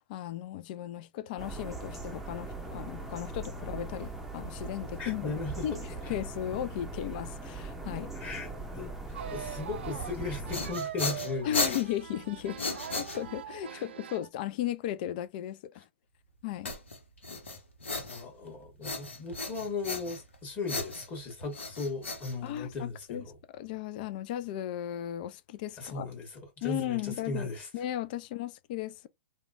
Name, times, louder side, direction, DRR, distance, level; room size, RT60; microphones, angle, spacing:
voice 1, 0.0-5.8 6.1-8.1 11.4-15.9 16.4-16.7 22.4-26.1 26.6-29.1, left 12 dB, 45° left, 0.3 m, -36 dB
sound 1, 1.4-10.7, right 2 dB, 5° right, 0.6 m, -40 dB
voice 2, 5.0-5.8 8.1-11.6 13.7-13.8 18.1-23.3 25.8-26.3 26.6-27.7, left 3 dB, 25° left, 1.4 m, -37 dB
sound 2, 9.1-14.3, right 9 dB, 65° right, 0.4 m, -42 dB
sound 3, 10.2-13.6 16.7-18.5 18.8-20.4 20.7-22.9, left 3 dB, 85° left, 0.9 m, -36 dB
2.9 x 2.2 x 2.5 m
hypercardioid pair, 115°, 6 cm